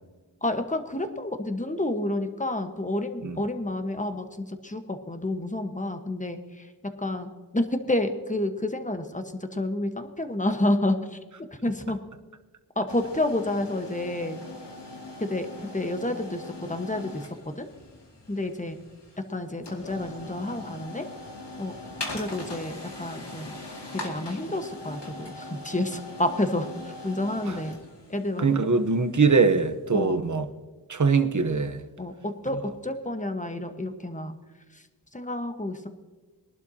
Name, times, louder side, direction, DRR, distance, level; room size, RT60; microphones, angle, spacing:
voice 1, 0.4-6.7 7.0-11.2 11.6-12.0 12.7-14.4 15.2-15.5 15.7-17.7 18.3-18.8 19.3-21.1 21.6-21.7 22.1-23.5 23.9-27.7 28.1-28.5 29.9-30.2 32.0-34.3 34.7-34.8 35.1-35.9, left 1 dB, 20° left, 1.2 m, -29 dB
sound 1, 12.9-29.7, left 2 dB, 90° left, 2.2 m, -41 dB
voice 2, 28.4-30.5 30.9-31.8, right 4 dB, 45° right, 1.0 m, -22 dB
22.0 x 11.5 x 2.8 m
wide cardioid pair, 65°, 41 cm